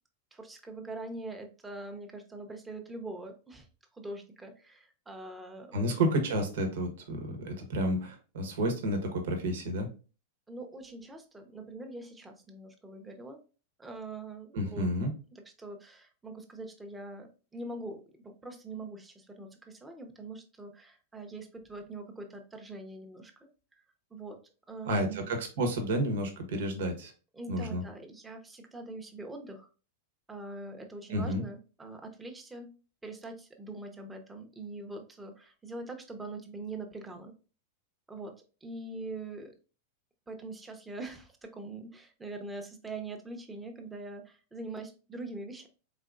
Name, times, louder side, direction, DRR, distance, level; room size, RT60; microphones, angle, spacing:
voice 1, 0.3-3.7 3.9-5.9 10.5-13.4 13.8-14.9 15.3-17.3 17.5-23.3 24.1-24.4 24.7-25.3 27.3-29.7 30.3-32.7 33.0-37.3 38.1-38.3 38.6-39.5 40.3-45.7, right 2 dB, 10° right, 4 dB, 0.9 m, -43 dB
voice 2, 5.7-9.9 14.5-15.1 24.8-27.1 27.5-27.8 31.1-31.4, right 1 dB, 75° right, 5 dB, 1.2 m, -30 dB
4.2 x 3.6 x 2.5 m, 0.35 s
hypercardioid pair, 115°, 0 cm